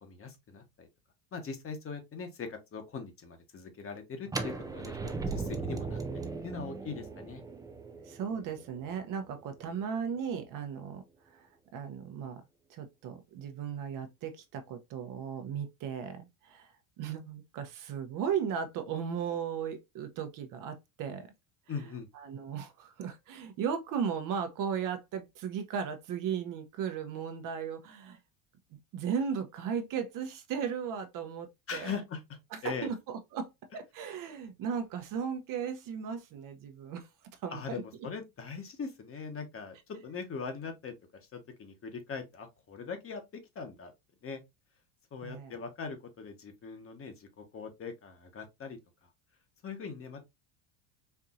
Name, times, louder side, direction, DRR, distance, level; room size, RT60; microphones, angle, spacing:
voice 1, 0.0-0.9 1.3-5.0 5.3-7.4 21.7-22.1 31.7-32.2 32.6-32.9 37.5-40.9 41.3-43.2 43.5-43.9 44.2-44.4 45.1-48.8 49.6-50.2, left 5 dB, 30° left, 1.1 m, -41 dB
sound 1, 4.3-10.1, right 4 dB, 10° right, 0.4 m, -38 dB
voice 2, 8.0-11.0 11.3-12.4 12.7-16.7 17.0-21.3 22.1-28.2 28.9-31.9 32.5-37.1 37.4-37.8 45.2-45.5, right 7 dB, 50° right, 0.8 m, -36 dB
4.5 x 2.6 x 2.4 m
supercardioid pair, 90°, 42 cm